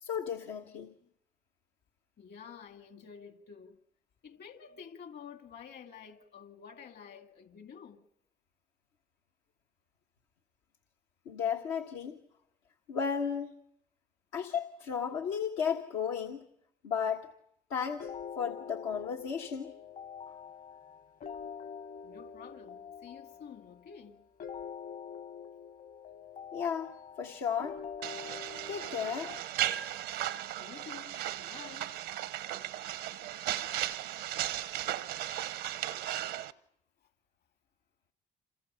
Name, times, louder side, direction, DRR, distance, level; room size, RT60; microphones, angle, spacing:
voice 1, 0.0-0.9 11.2-12.2 12.9-13.5 14.3-16.4 16.8-17.3 17.7-18.1 18.4-19.7 26.5-27.8 28.7-29.4, left 7 dB, 90° left, 1.4 m, -34 dB
voice 2, 2.2-3.8 4.2-8.1 22.0-24.2 30.6-32.0, left 7 dB, 65° left, 2.3 m, -50 dB
sound 1, 18.0-29.4, left 7 dB, 45° left, 1.0 m, -45 dB
sound 2, 28.0-36.5, right 12 dB, 85° right, 0.9 m, -36 dB
28.0 x 27.5 x 5.7 m
supercardioid pair, 55°, 19 cm